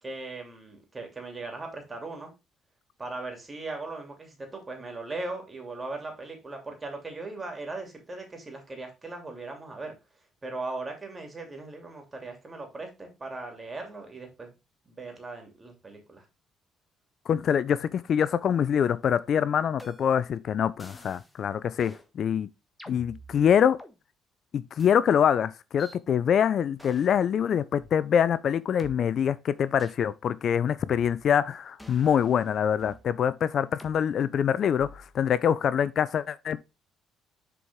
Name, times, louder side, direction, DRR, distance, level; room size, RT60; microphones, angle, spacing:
voice 1, 0.0-2.3 3.0-9.9 10.4-14.5 14.8-16.2, right 3 dB, 25° right, 2.9 m, -38 dB
voice 2, 17.3-22.5 22.9-23.8 24.5-36.6, left 8 dB, 60° left, 0.4 m, -25 dB
sound 1, 19.8-20.3 20.8-21.4 21.8-22.1 22.8-24.0 24.8-25.0 25.8-26.0 26.8-27.2 27.8-27.9 28.8-28.9 29.8-30.1 30.8-31.4 31.8-33.1 33.8-34.0 34.8-35.2, equal, 10° left, 1.3 m, -48 dB
6.9 x 4.7 x 3.6 m
cardioid pair, 80°, 0 cm